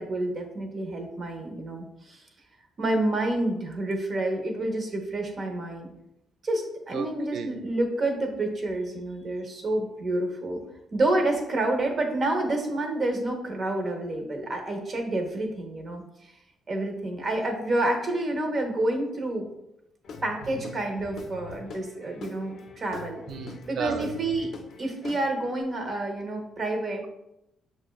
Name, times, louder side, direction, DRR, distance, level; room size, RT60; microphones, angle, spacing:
voice 1, 0.0-2.2 2.8-5.9 6.4-10.6 10.9-16.3 16.7-19.5 20.2-23.2 23.7-24.5 24.8-27.1, right 2 dB, 45° right, 3 dB, 0.8 m, -29 dB
voice 2, 6.9-7.6 20.4-20.6 23.3-24.2, right 7 dB, 70° right, 7 dB, 0.3 m, -35 dB
Guitar / Drum, 20.0-25.6, left 4 dB, 65° left, 0.4 m, -43 dB
6.2 x 2.2 x 2.3 m, 0.84 s
cardioid pair, 90°, 0 cm